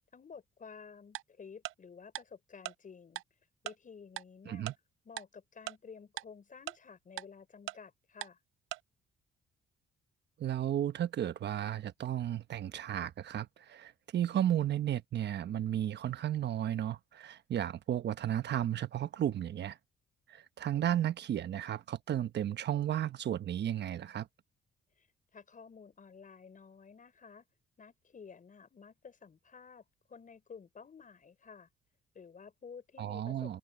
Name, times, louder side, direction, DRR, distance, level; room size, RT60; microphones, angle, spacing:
voice 1, 0.1-3.2 3.6-4.7 5.0-8.4 25.0-25.1 25.3-27.5 27.8-31.7 32.1-33.6, left 6 dB, 40° left, 6.2 m, -52 dB
Tick-tock, 1.1-1.2 1.6-1.7 2.1-2.2 2.6-2.7 3.2-3.3 3.7-3.8 4.2-4.3 4.7-4.8 5.2-5.3 5.7-5.8 6.2-6.3 6.7-6.8 7.2-7.3 7.7-7.8 8.2-8.3 8.7-8.8, right 16 dB, 85° right, 0.5 m, -39 dB
voice 2, 10.4-19.8 20.3-24.3 33.0-33.6, right 11 dB, 60° right, 1.1 m, -33 dB
cardioid pair, 90°, 20 cm